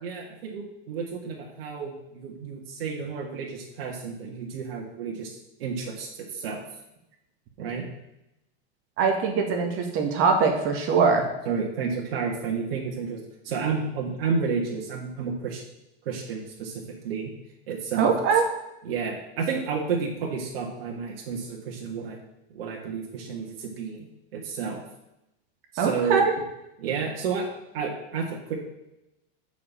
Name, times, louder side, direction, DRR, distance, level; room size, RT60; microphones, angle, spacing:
voice 1, 0.0-6.6 7.6-7.9 11.5-15.6 16.1-17.3 17.7-18.1 18.8-22.2 22.5-24.8 25.7-26.3 26.8-27.5 27.7-28.5, right 5 dB, 75° right, -1 dB, 1.8 m, -31 dB
voice 2, 9.0-11.2 18.0-18.4 25.8-26.3, right 5 dB, 45° right, 2 dB, 1.8 m, -22 dB
6.8 x 5.2 x 7.0 m, 0.88 s
supercardioid pair, 125°, 29 cm